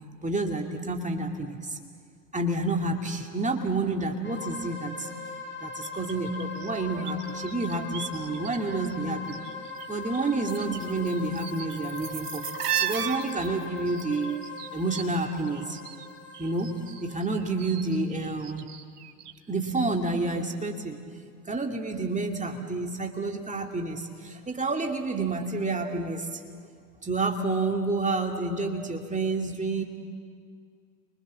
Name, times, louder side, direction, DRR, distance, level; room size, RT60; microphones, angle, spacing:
voice 1, 0.2-1.8 2.3-5.1 5.6-9.4 9.9-12.5 12.8-14.4 14.7-15.8 16.4-18.7 19.5-21.0 21.5-26.4 27.0-29.8, right 3 dB, 15° right, 3 dB, 2.4 m, -29 dB
sound 1, 4.2-17.8, left 4 dB, 25° left, 7.1 m, -40 dB
sound 2, 5.8-8.6 8.8-9.9 10.1-16.1 16.3-19.4 19.7-19.8, right 11 dB, 75° right, 1.7 m, -36 dB
30.0 x 23.5 x 7.5 m, 2.1 s
hypercardioid pair, 80°, 48 cm